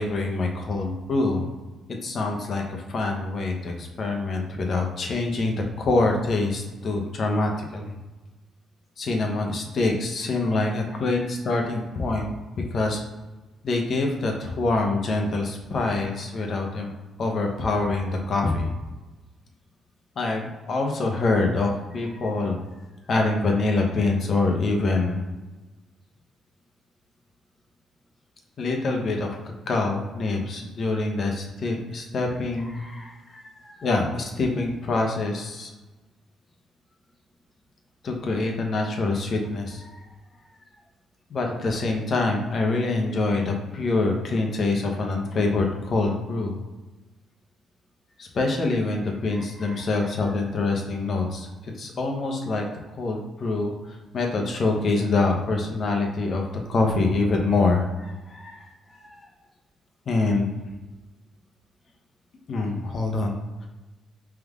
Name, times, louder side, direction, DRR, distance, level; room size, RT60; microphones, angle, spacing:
voice 1, 0.0-1.4 1.9-8.0 9.0-12.3 12.7-13.0 13.6-16.9 17.2-18.7 20.2-22.6 23.1-25.2 28.6-29.4 29.7-32.8 33.8-35.7 38.0-39.8 41.3-46.6 48.2-57.9 60.1-60.5 62.5-63.7, left 3 dB, 50° left, 1 dB, 0.9 m, -25 dB
voice 2, 32.7-33.9 49.4-49.8 58.3-59.3, left 1 dB, 20° left, 0 dB, 0.5 m, -48 dB
3.5 x 3.4 x 3.6 m, 1.1 s
cardioid pair, 90°, 0 cm